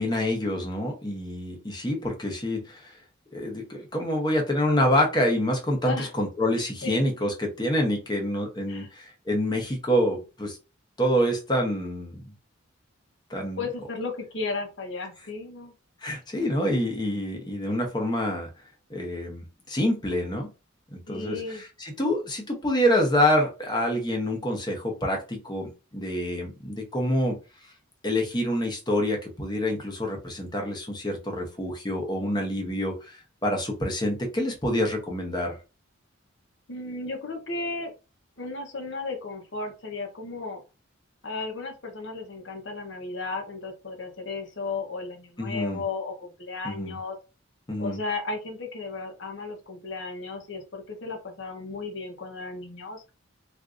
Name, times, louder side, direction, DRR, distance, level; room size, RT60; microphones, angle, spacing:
voice 1, 0.0-3.0 3.3-10.6 11.0-12.2 13.3-13.6 16.0-18.5 18.9-20.5 20.9-27.4 27.6-27.7 28.0-35.6 45.4-45.8 46.6-47.0 47.7-48.0, equal, 20° left, 1 dB, 0.8 m, -27 dB
voice 2, 13.6-15.7 21.1-21.6 36.7-37.9 38.4-40.6 41.2-47.2 47.8-53.0, left 3 dB, 60° left, 3 dB, 0.9 m, -34 dB
3.6 x 2.6 x 2.5 m, 0.30 s
head